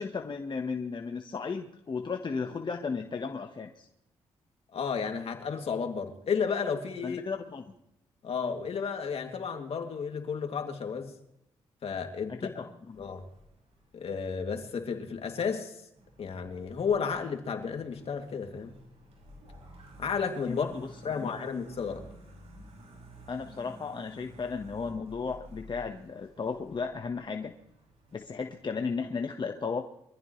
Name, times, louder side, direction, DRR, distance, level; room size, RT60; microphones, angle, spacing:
voice 1, 0.0-3.9 7.0-7.6 12.3-13.0 20.5-20.9 21.2-21.3 23.3-27.5 28.1-29.8, left 5 dB, 45° left, 4 dB, 1.4 m, -35 dB
voice 2, 4.7-7.2 8.2-11.1 11.8-12.6 13.0-13.3 13.9-15.8 16.2-18.8 20.0-20.7 21.0-22.1, left 6 dB, 60° left, 3 dB, 2.7 m, -32 dB
sound 1, 12.9-15.2 16.0-29.0, equal, 65° right, 6.9 m, -53 dB
24.0 x 14.5 x 3.3 m, 0.82 s
supercardioid pair, 55°, 11 cm